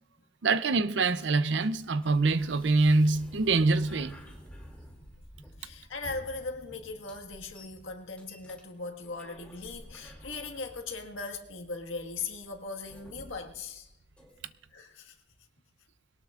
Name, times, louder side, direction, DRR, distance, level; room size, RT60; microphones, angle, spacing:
voice 1, 0.4-4.1, right 3 dB, 65° right, 0.6 m, -25 dB
sound 1, 0.9-14.7, equal, 5° left, 2.5 m, -52 dB
voice 2, 5.6-13.9 14.7-15.1, left 3 dB, 85° left, 1.7 m, -39 dB
21.5 x 18.5 x 2.5 m
head